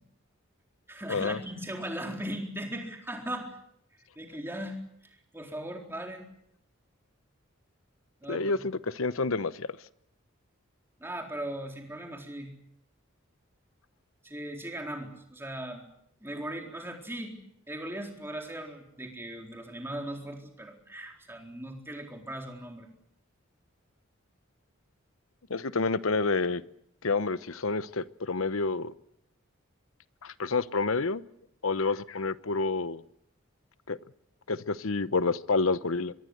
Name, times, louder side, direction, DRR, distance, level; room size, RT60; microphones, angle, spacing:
voice 1, 0.9-3.6 4.2-6.3 8.2-8.6 11.0-12.5 14.2-15.8 16.2-17.4 17.7-22.9, right 1 dB, 10° right, 2 dB, 4.0 m, -38 dB
voice 2, 8.3-9.7 25.5-26.6 27.0-28.9 30.2-31.2 31.6-33.0 33.9-34.0 34.5-36.1, left 3 dB, 80° left, 15 dB, 1.0 m, -28 dB
24.5 x 22.5 x 8.0 m, 0.73 s
head